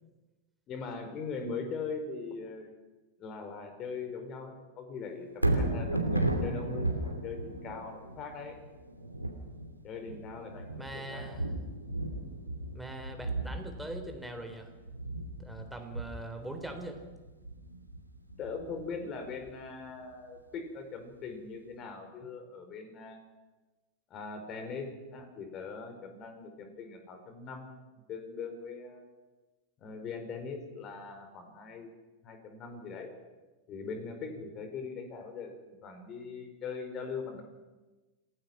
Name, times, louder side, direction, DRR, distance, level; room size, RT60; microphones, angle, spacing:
voice 1, 0.7-2.7 3.2-8.6 9.8-11.4 18.4-23.2 24.1-27.7 28.1-29.0 29.8-31.9 32.2-33.1 33.7-37.4, left 4 dB, 35° left, 6 dB, 4.6 m, -41 dB
Thunder, 5.3-19.5 20.0-20.1, right 2 dB, 85° right, 2.7 m, -35 dB
voice 2, 10.8-11.5 12.7-14.7 15.4-17.0, right 1 dB, 5° right, 4 dB, 3.6 m, -42 dB
27.5 x 17.5 x 6.2 m, 1.2 s
figure-of-eight pair, 90°, 0 cm